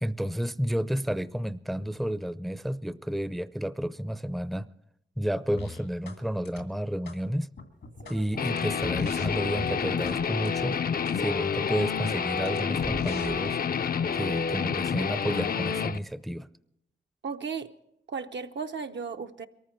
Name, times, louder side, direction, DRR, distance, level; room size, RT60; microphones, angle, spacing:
voice 1, 0.0-4.7 5.2-7.5 8.1-10.8 11.1-13.6 14.1-16.5, equal, ahead, 0.5 m, -31 dB
sound 1, 5.6-6.2 6.5-7.2 7.6-10.2 10.5-10.7 11.1-11.2 11.6-13.6, left 4 dB, 80° left, 1.9 m, -43 dB
sound 2, 7.9-10.8 11.7-12.5 12.7-13.2 13.5-14.3 14.6-14.7 14.9-15.0 15.7-15.8 16.1-16.2, right 4 dB, 90° right, 1.8 m, -50 dB
Guitar, 8.4-16.0, left 6 dB, 50° left, 0.5 m, -29 dB
voice 2, 17.2-17.7 18.1-19.5, right 5 dB, 70° right, 0.8 m, -35 dB
22.5 x 14.0 x 4.5 m
cardioid pair, 50°, 19 cm